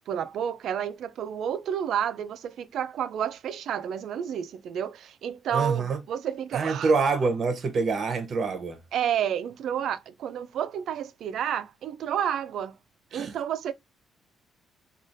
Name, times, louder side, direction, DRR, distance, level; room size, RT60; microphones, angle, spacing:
voice 1, 0.1-6.9 8.9-12.8 13.1-13.7, right 9 dB, 70° right, 0.3 m, -30 dB
voice 2, 5.5-6.0 6.5-8.8 13.1-13.3, right 4 dB, 50° right, 0.7 m, -26 dB
3.2 x 2.3 x 2.5 m
cardioid pair, 90°, 0 cm